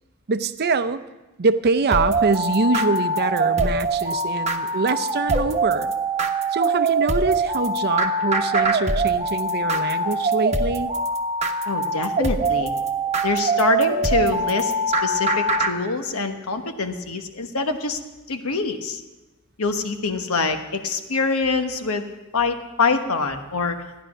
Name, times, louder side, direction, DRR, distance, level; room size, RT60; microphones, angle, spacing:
voice 1, 0.3-1.0 1.4-5.9 6.5-10.9, right 4 dB, 50° right, 12 dB, 0.6 m, -24 dB
sound 1, 1.9-15.7, right 2 dB, 30° right, 1.1 m, -23 dB
voice 2, 11.6-12.7 13.2-14.7 15.0-18.0 18.3-19.0 19.6-22.0 22.3-23.8, left 4 dB, 75° left, 7 dB, 1.2 m, -25 dB
15.0 x 10.5 x 6.0 m, 1.1 s
head